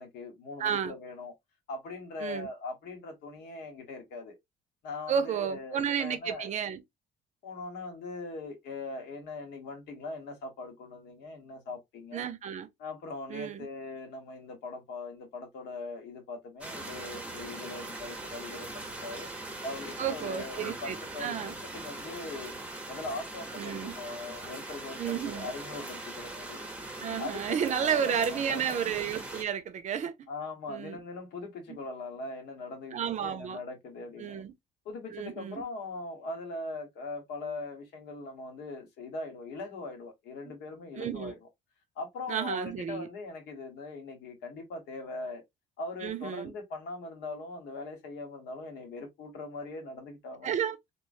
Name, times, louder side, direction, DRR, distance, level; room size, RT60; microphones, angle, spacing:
voice 1, 0.0-1.3 1.7-4.3 4.8-6.5 7.4-12.3 12.8-19.3 19.6-22.5 22.9-26.6 27.2-28.8 30.3-34.4 34.8-41.4 42.0-45.4 45.8-50.6, left 3 dB, 80° left, 1.1 m, -41 dB
voice 2, 0.6-0.9 2.2-2.5 5.1-6.8 12.1-12.7 13.3-13.7 20.0-21.5 23.6-23.9 25.0-25.5 27.0-30.1 30.7-31.0 32.9-33.6 34.2-34.5 35.1-35.6 40.5-40.6 41.0-41.3 42.3-43.1 46.0-46.5 50.4-50.9, right 8 dB, 45° right, 0.5 m, -32 dB
sound 1, 16.6-29.4, right 2 dB, 10° right, 0.7 m, -41 dB
3.0 x 2.0 x 2.4 m
cardioid pair, 110°, 17 cm